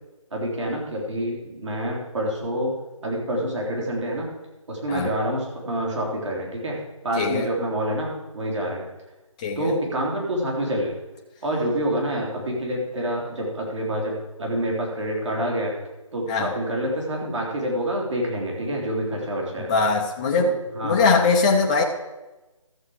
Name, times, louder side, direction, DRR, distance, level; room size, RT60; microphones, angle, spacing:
voice 1, 0.3-2.7 3.0-4.3 4.7-6.8 7.0-8.8 9.6-11.0 11.4-15.7 16.1-19.7 20.3-21.1, right 1 dB, 55° right, -2 dB, 3.6 m, -27 dB
voice 2, 7.2-7.5 9.4-9.7 16.3-16.5 19.7-21.8, left 4 dB, 15° left, 0 dB, 0.6 m, -21 dB
13.5 x 7.3 x 4.9 m, 1.1 s
figure-of-eight pair, 160°, 18 cm